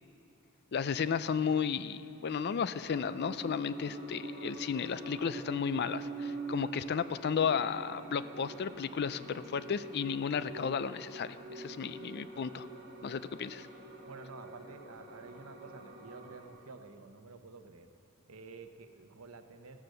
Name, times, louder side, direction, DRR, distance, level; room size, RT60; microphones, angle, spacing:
voice 1, 0.7-12.7 13.0-13.7, left 6 dB, 50° left, 14 dB, 0.4 m, -33 dB
sound 1, 2.8-16.5, right 2 dB, 45° right, 2.3 m, -45 dB
voice 2, 14.1-17.9 18.3-19.8, right 4 dB, 85° right, 7 dB, 0.9 m, -50 dB
15.0 x 13.0 x 6.7 m, 2.9 s
head